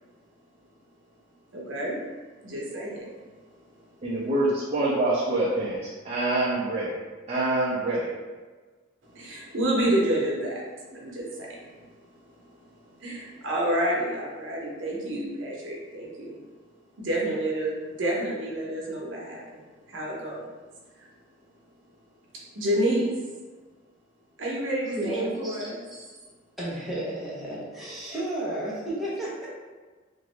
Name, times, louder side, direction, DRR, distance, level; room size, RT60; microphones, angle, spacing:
voice 1, 1.5-2.0 2.4-3.1 9.0-10.6 10.9-11.6 13.0-16.4 17.0-19.6 19.9-20.5 21.0-21.1 22.5-23.1 24.4-25.8, right 1 dB, 70° right, -3 dB, 0.8 m, -29 dB
voice 2, 4.0-7.0 7.3-8.1, right 2 dB, 35° right, -9 dB, 0.5 m, -26 dB
voice 3, 25.0-26.1 26.6-29.5, right 1 dB, ahead, -8 dB, 0.7 m, -33 dB
2.9 x 2.5 x 3.1 m, 1.3 s
head